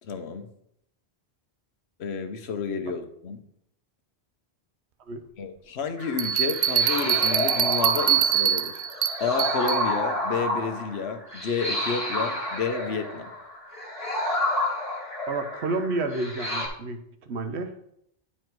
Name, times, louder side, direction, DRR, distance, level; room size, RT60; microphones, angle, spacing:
voice 1, 0.0-0.5 2.0-3.4 5.4-8.8 9.2-13.3, left 5 dB, 85° left, 7 dB, 1.1 m, -30 dB
sound 1, 6.0-16.7, left 1 dB, 35° left, 2.0 m, -30 dB
Bell, 6.2-9.9, right 10 dB, 60° right, 0.7 m, -24 dB
voice 2, 15.3-17.9, right 3 dB, 85° right, 8 dB, 1.1 m, -30 dB
9.5 x 4.4 x 4.6 m, 0.74 s
omnidirectional pair, 1.1 m